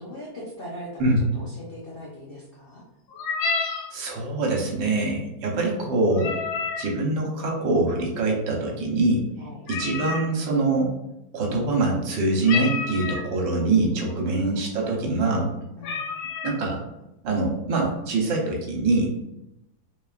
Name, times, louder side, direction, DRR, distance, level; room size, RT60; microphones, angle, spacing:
voice 1, 0.0-1.0 1.3-2.8 9.4-9.6 15.8-16.1, left 1 dB, 50° left, -6 dB, 0.7 m, -40 dB
sound 1, 3.1-3.9 6.1-6.9 9.7-10.3 12.5-13.3 14.1-14.2 14.6-14.8 15.4-15.5 15.8-16.6, left 5 dB, 85° left, 1.4 m, -29 dB
voice 2, 3.9-6.4 6.8-9.2 9.7-10.9 11.3-15.5 16.4-16.8 17.2-19.1, right 2 dB, 75° right, -1 dB, 1.6 m, -24 dB
4.2 x 3.8 x 2.4 m, 0.91 s
omnidirectional pair, 2.1 m